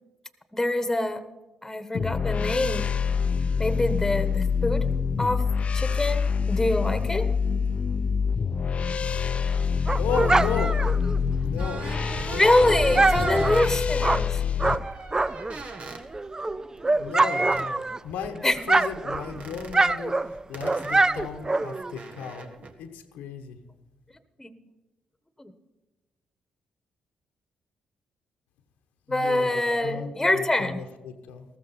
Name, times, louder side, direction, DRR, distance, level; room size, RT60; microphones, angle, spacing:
voice 1, 0.5-1.2 1.6-2.9 3.6-4.9 5.2-5.4 5.7-7.3 12.3-14.4 18.4-18.6 24.4-24.5 25.4-25.5 29.1-30.8, left 1 dB, 15° left, 11 dB, 1.4 m, -25 dB
sound 1, 1.9-14.8, left 6 dB, 50° left, 0.6 m, -26 dB
Dog, 9.3-15.6 16.0-18.3 18.5-22.0, right 2 dB, 25° right, 0.5 m, -25 dB
voice 2, 10.0-10.8 11.4-11.8 12.1-13.7 17.0-20.1 20.5-22.5 22.8-23.6 29.1-31.4, left 6 dB, 80° left, 5 dB, 1.1 m, -35 dB
sound 2, 11.6-13.7 14.8-16.0 17.3-17.7 19.2-19.8 20.5-22.7, right 3 dB, 55° right, 1.5 m, -40 dB
14.0 x 14.0 x 4.3 m, 1.1 s
supercardioid pair, 50°, 3 cm